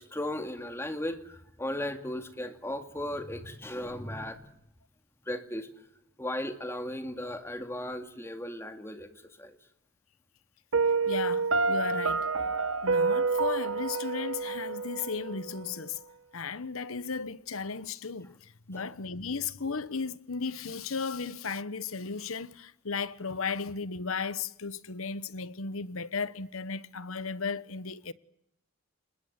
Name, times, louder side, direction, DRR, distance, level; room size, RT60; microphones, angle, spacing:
voice 1, 0.0-4.5 5.3-5.7 6.2-9.6 18.7-18.9, left 1 dB, 10° left, 2.2 m, -36 dB
Piano, 10.7-15.7, right 4 dB, 70° right, 1.2 m, -28 dB
voice 2, 11.1-12.3 12.8-16.0 16.3-28.1, left 5 dB, 80° left, 1.2 m, -35 dB
28.5 x 21.0 x 9.6 m
head